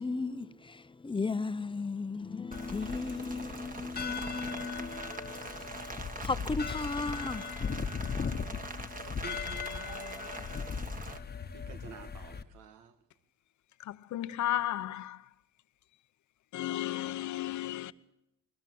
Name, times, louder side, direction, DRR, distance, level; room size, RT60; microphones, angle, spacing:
voice 1, 0.0-5.8 6.2-7.6, left 3 dB, 15° left, 0.9 m, -36 dB
sound 1, 2.5-12.4, left 6 dB, 30° left, 1.2 m, -38 dB
Rain, 2.5-11.2, right 3 dB, 25° right, 1.8 m, -44 dB
voice 2, 9.1-10.3 11.0-11.2 11.5-12.9, right 6 dB, 80° right, 1.9 m, -50 dB
voice 3, 14.1-15.2 16.5-17.9, left 14 dB, 70° left, 1.0 m, -33 dB
21.0 x 20.0 x 7.9 m
cardioid pair, 90°, 30 cm